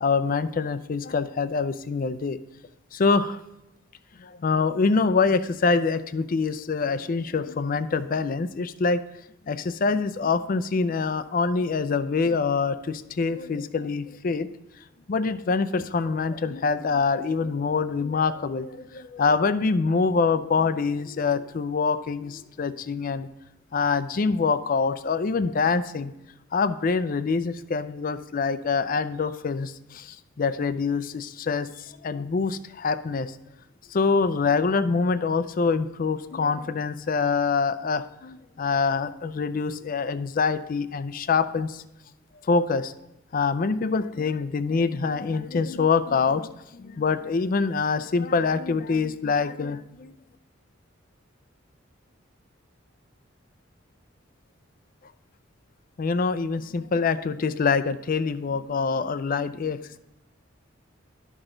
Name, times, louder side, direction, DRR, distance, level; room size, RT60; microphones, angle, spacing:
voice 1, 0.0-2.4 2.9-3.4 4.2-9.0 9.5-14.5 15.1-23.3 23.7-26.1 26.5-33.4 33.9-41.8 42.5-42.9 43.3-50.2 56.0-60.0, left 4 dB, 45° left, 13 dB, 0.4 m, -25 dB
12.0 x 6.1 x 3.8 m, 0.91 s
head